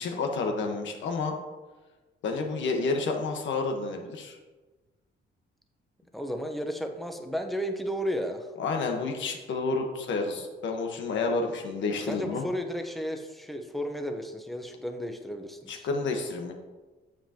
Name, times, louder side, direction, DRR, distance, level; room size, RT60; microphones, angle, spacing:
voice 1, 0.0-1.3 2.2-4.4 8.6-12.4 15.7-16.5, left 3 dB, 70° left, 3 dB, 1.3 m, -30 dB
voice 2, 6.1-8.5 12.1-15.9, equal, ahead, 4 dB, 0.9 m, -33 dB
8.8 x 7.3 x 2.9 m, 1.2 s
cardioid pair, 90°, 20 cm